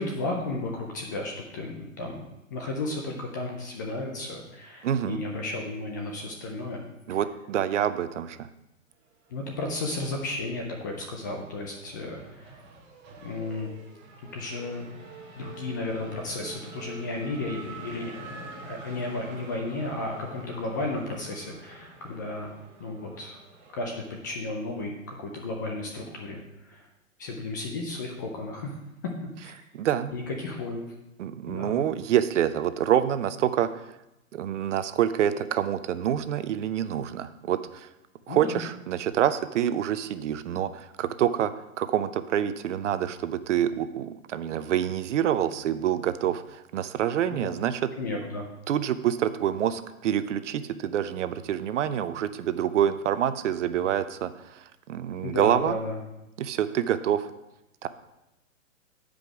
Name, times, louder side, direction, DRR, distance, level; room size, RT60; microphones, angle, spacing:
voice 1, 0.0-2.3 2.5-6.8 9.3-12.6 13.2-13.7 14.3-14.9 15.4-22.5 22.8-23.4 23.7-26.9 27.2-28.7 29.4-29.6 30.1-30.9 31.5-31.8 38.3-38.6 47.3-47.5 48.0-48.5 55.2-56.0, left 2 dB, 15° left, 1 dB, 0.4 m, -33 dB
voice 2, 4.8-5.2 7.1-8.5 29.7-30.1 31.2-33.7 34.3-37.9 38.3-47.9 48.7-55.8 56.4-57.3 57.8-57.9, right 10 dB, 60° right, 12 dB, 0.6 m, -27 dB
Race car auto racing / Accelerating revving vroom, 9.3-10.3 10.6-24.3, right 3 dB, 25° right, 1.4 m, -46 dB
9.3 x 5.2 x 4.8 m, 0.92 s
hypercardioid pair, 130°, 41 cm